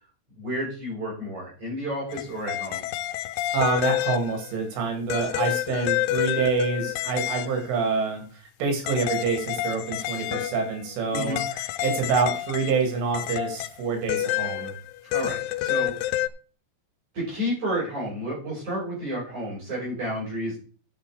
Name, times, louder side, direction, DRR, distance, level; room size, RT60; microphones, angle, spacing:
voice 1, 0.4-2.9 11.1-11.4 15.1-16.3 17.1-20.6, equal, 35° right, -6 dB, 7.1 m, -31 dB
sound 1, 2.1-4.6 5.1-7.7 8.9-12.9 13.1-16.3, left 14 dB, 85° left, 3.4 m, -28 dB
voice 2, 3.5-14.7, right 5 dB, 70° right, 4 dB, 4.8 m, -27 dB
11.0 x 7.3 x 4.9 m, 0.38 s
omnidirectional pair, 6.0 m